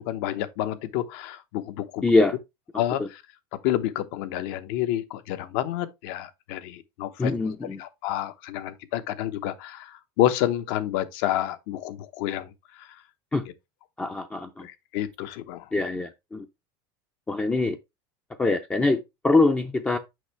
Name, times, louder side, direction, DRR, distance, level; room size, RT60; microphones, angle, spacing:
voice 1, 0.0-2.0 2.8-3.2 3.6-12.5 14.6-15.6, left 13 dB, 65° left, 0.9 m, -29 dB
voice 2, 2.0-2.4 3.0-3.1 7.2-7.8 13.3-13.4 14.0-14.7 15.7-16.5 17.3-17.8 18.4-20.0, left 3 dB, 10° left, 0.5 m, -23 dB
6.3 x 5.3 x 3.1 m
supercardioid pair, 150°, 11 cm